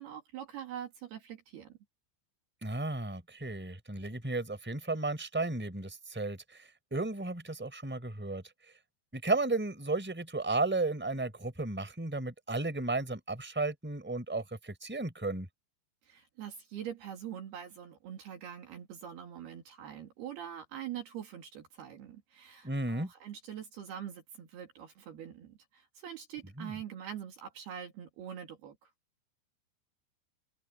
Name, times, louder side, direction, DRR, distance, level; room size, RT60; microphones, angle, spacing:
voice 1, 0.0-1.8 16.1-28.9, right 9 dB, 60° right, 4.1 m, -44 dB
voice 2, 2.6-8.4 9.1-15.5 22.6-23.1 26.6-26.8, right 2 dB, ahead, 4.1 m, -34 dB
open air
omnidirectional pair, 5.4 m